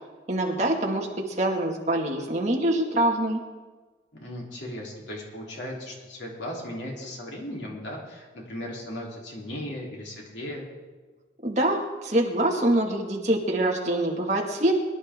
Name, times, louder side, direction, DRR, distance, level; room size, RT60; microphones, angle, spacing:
voice 1, 0.3-3.4 11.4-14.7, right 1 dB, 40° right, -1 dB, 2.1 m, -25 dB
voice 2, 4.2-10.7, left 1 dB, 90° left, -2 dB, 3.6 m, -37 dB
22.5 x 11.5 x 3.8 m, 1.3 s
head